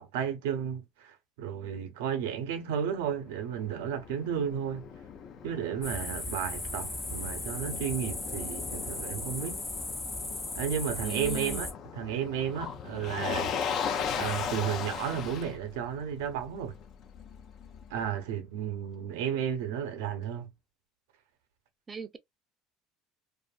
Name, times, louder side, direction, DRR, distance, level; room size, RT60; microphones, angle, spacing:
voice 1, 0.0-4.9 5.4-9.6 10.5-13.5 14.1-16.7 17.9-20.5, right 8 dB, 90° right, 0.7 m, -33 dB
Motor vehicle (road), 3.0-18.1, left 7 dB, 50° left, 0.6 m, -38 dB
sound 1, 5.8-11.7, left 2 dB, 20° left, 0.8 m, -37 dB
voice 2, 11.0-11.7 21.9-22.2, right 6 dB, 25° right, 0.5 m, -39 dB
2.6 x 2.4 x 2.4 m
supercardioid pair, 110°, 0 cm